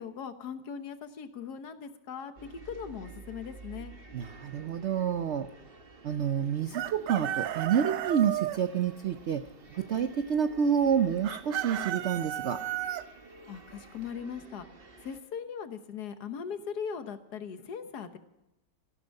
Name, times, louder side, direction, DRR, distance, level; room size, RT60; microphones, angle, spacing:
voice 1, 0.0-2.3 2.7-3.9 13.5-14.7 15.0-18.2, left 7 dB, 70° left, 9 dB, 1.6 m, -39 dB
sound 1, 2.4-15.2, right 3 dB, 35° right, 1.4 m, -51 dB
voice 2, 4.1-5.5 6.0-9.4 9.7-12.6, right 8 dB, 70° right, 10 dB, 0.6 m, -28 dB
Chicken rooster, 6.7-8.6 11.2-13.0, right 13 dB, 85° right, 1.3 m, -33 dB
14.5 x 12.5 x 5.2 m, 0.92 s
omnidirectional pair, 1.8 m